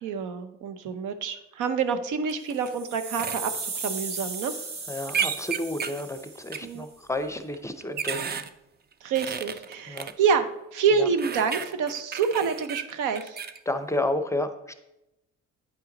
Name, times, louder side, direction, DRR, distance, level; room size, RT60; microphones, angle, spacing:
voice 1, 0.0-4.5 6.6-6.9 9.0-13.4, right 6 dB, 85° right, 9 dB, 0.7 m, -27 dB
sound 1, 2.3-2.7 3.2-3.4 5.1-6.0 6.5-6.6 7.5-8.5 9.2-10.1 11.2-13.6, right 7 dB, 35° right, 0.5 m, -32 dB
sound 2, 2.5-6.7, right 4 dB, 65° right, 1.3 m, -36 dB
voice 2, 4.9-8.4 9.9-10.1 11.0-11.1 13.7-14.7, left 1 dB, 10° left, 9 dB, 0.6 m, -31 dB
9.1 x 5.7 x 3.9 m, 0.91 s
cardioid pair, 90°, 30 cm